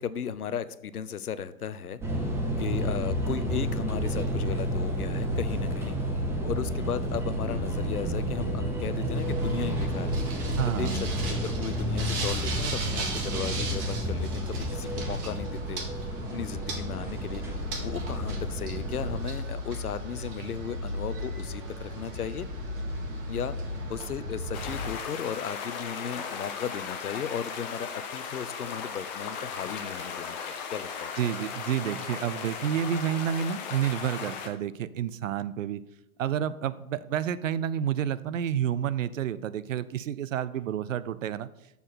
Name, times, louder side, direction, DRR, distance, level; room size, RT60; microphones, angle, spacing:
voice 1, 0.0-2.0 2.6-6.0 6.4-10.2 10.6-15.8 16.2-17.4 17.8-22.5 23.3-23.5 23.9-31.1, left 8 dB, 85° left, 15 dB, 0.6 m, -36 dB
sound 1, 2.0-19.2, equal, 5° right, 0.7 m, -31 dB
sound 2, 9.2-24.9, equal, 40° right, 1.8 m, -36 dB
voice 2, 10.6-11.0 31.2-35.8 36.2-41.5, right 9 dB, 60° right, 16 dB, 0.5 m, -29 dB
sound 3, 24.5-34.5, left 6 dB, 30° left, 0.8 m, -37 dB
6.9 x 4.3 x 5.7 m, 0.86 s
figure-of-eight pair, 115°, 44 cm